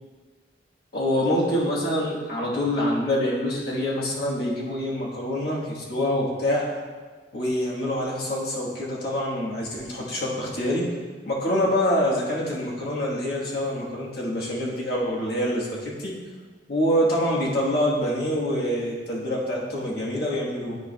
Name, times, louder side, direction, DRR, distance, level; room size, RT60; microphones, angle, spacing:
voice 1, 0.9-6.8 7.3-10.8 11.2-16.1 16.7-20.8, equal, 60° left, -5 dB, 1.3 m, -26 dB
12.5 x 4.6 x 2.2 m, 1.4 s
head